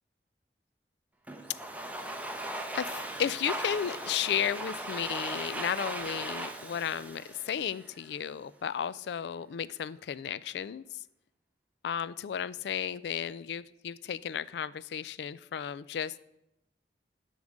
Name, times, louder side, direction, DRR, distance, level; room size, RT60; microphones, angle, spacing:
Domestic sounds home sounds, 1.3-8.2, right 1 dB, 10° right, 0.6 m, -38 dB
voice 1, 2.7-10.8 11.8-16.2, left 8 dB, 70° left, 17 dB, 0.3 m, -34 dB
10.5 x 3.7 x 6.4 m, 0.83 s
head